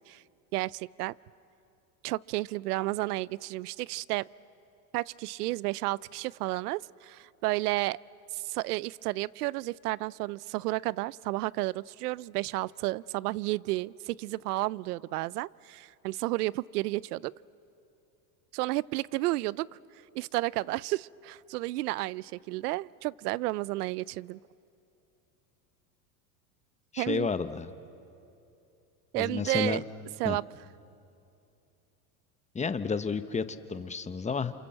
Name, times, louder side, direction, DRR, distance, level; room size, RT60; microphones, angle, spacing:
voice 1, 0.5-1.1 2.0-4.3 4.9-8.0 8.3-17.3 18.5-19.7 20.1-24.4 27.0-27.3 29.1-29.8 30.2-30.4, right 19 dB, 90° right, 23 dB, 0.6 m, -32 dB
voice 2, 26.9-27.7 29.1-29.8 30.2-30.4 32.5-34.5, left 5 dB, 15° left, 11 dB, 1.0 m, -31 dB
28.0 x 27.5 x 7.6 m, 2.7 s
supercardioid pair, 110°, 45 cm